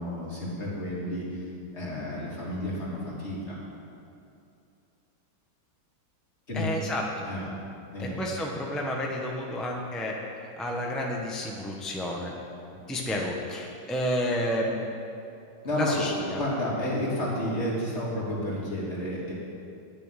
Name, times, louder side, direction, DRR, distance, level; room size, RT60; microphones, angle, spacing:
voice 1, 0.0-3.6 6.5-6.7 7.2-7.6 7.9-8.3 15.6-16.0 16.4-19.3, left 1 dB, 30° left, -7 dB, 3.4 m, -31 dB
voice 2, 6.5-7.3 8.0-10.1 10.6-12.3 12.9-14.9 15.8-16.4, left 1 dB, ahead, -1 dB, 0.5 m, -30 dB
11.0 x 7.1 x 9.0 m, 2.6 s
omnidirectional pair, 2.2 m